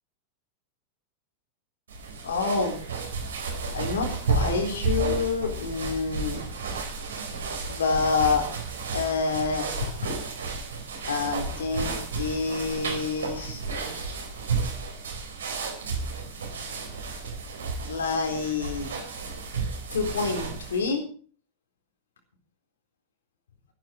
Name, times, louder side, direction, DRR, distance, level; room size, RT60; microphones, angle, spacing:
sound 1, 1.9-20.9, right 4 dB, 65° right, 4.2 m, -32 dB
voice 1, 2.2-2.8 3.7-6.4 7.3-8.4 8.9-9.7 11.0-13.6 17.9-18.9 19.9-21.0, left 4 dB, 65° left, 4 dB, 3.8 m, -27 dB
14.0 x 12.5 x 5.1 m, 0.43 s
figure-of-eight pair, 90°, 0 cm